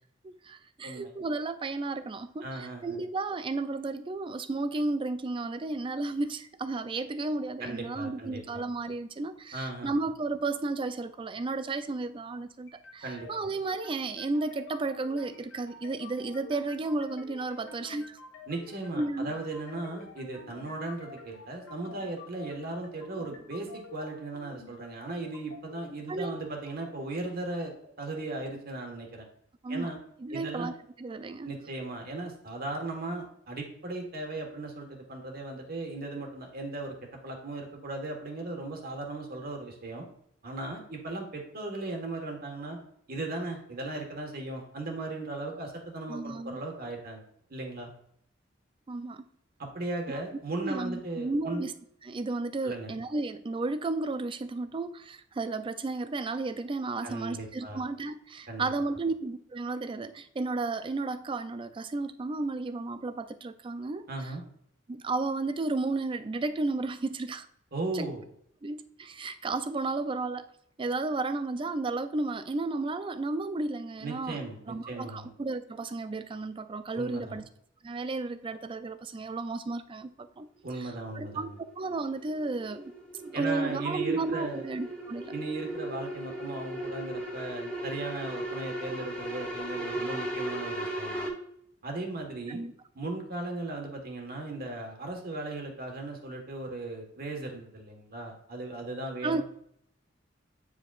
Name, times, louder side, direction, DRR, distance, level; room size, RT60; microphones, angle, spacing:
voice 1, 0.2-18.2 19.0-19.3 26.1-26.4 29.6-29.9 30.2-30.7 31.0-31.5 46.1-46.6 48.9-49.2 50.1-50.2 50.5-51.7 52.0-64.1 64.9-67.5 67.9-68.1 68.6-70.5 70.8-74.4 74.7-77.4 77.8-80.5 81.1-81.5 81.8-82.9 83.2-85.3 92.5-92.7 99.2-99.4, right 3 dB, 25° right, 0.4 m, -33 dB
voice 2, 2.4-3.0 7.6-8.6 9.5-9.9 13.0-13.3 18.5-29.3 29.7-30.0 30.3-30.7 31.4-36.9 37.2-40.1 40.4-42.8 43.1-47.2 47.5-47.9 49.6-51.7 52.6-52.9 57.0-57.8 58.5-58.7 64.1-64.4 67.7-68.2 74.0-75.3 76.9-77.4 80.6-81.6 83.3-84.6 85.3-91.3 91.8-92.6 92.9-99.4, right 2 dB, 50° right, 1.4 m, -37 dB
sound 1, 12.7-28.7, left 3 dB, 80° left, 1.3 m, -49 dB
sound 2, 80.9-91.3, right 1 dB, 5° left, 1.2 m, -37 dB
8.8 x 4.9 x 2.4 m
head